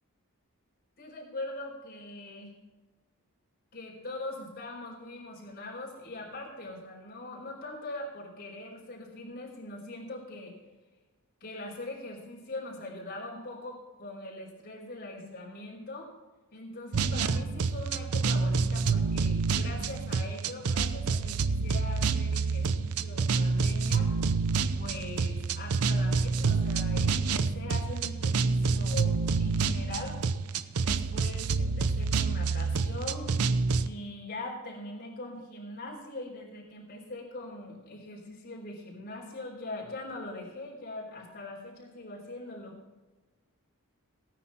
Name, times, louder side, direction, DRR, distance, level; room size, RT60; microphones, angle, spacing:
voice 1, 1.0-2.5 3.7-10.6 11.4-16.1 16.5-24.2 24.7-30.2 30.8-33.4 33.8-42.7, left 2 dB, 45° left, -4 dB, 4.4 m, -41 dB
sound 1, 16.9-33.9, right 4 dB, 85° right, 0.6 m, -28 dB
17.0 x 9.5 x 4.3 m, 1.2 s
head